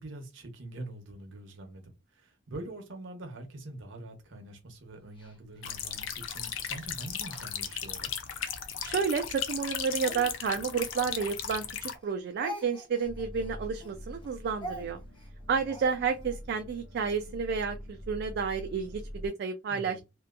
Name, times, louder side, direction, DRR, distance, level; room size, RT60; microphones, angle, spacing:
voice 1, 0.0-8.1 19.7-20.0, right 2 dB, 80° right, 0.8 m, -44 dB
Speech, 5.2-8.3 8.8-11.7 11.9-16.3, equal, 25° left, 0.7 m, -46 dB
sound 1, 5.6-11.9, left 8 dB, 90° left, 0.4 m, -36 dB
voice 2, 8.8-15.0 15.5-20.0, right 6 dB, 60° right, 0.3 m, -31 dB
sound 2, 13.0-19.3, equal, 65° left, 0.7 m, -44 dB
2.8 x 2.2 x 2.4 m
head